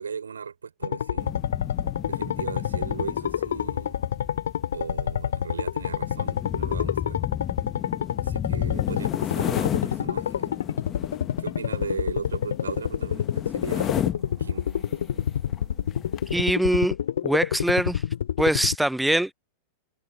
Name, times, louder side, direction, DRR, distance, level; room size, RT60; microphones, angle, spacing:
voice 1, 0.0-1.4 2.1-4.0 4.7-7.2 8.2-10.5 11.4-14.1 14.4-14.7, right 6 dB, 70° right, 5.2 m, -37 dB
sound 1, 0.8-18.8, left 9 dB, 65° left, 0.5 m, -28 dB
sound 2, 1.2-14.4 15.0-15.2 15.5-15.6 15.9-16.4, left 10 dB, 30° left, 1.6 m, -33 dB
Animal, 12.9-17.1, right 24 dB, 40° right, 4.2 m, -53 dB
voice 2, 16.3-17.0 17.2-18.0 18.4-19.3, right 1 dB, 5° right, 0.5 m, -23 dB
figure-of-eight pair, 90°, 0 cm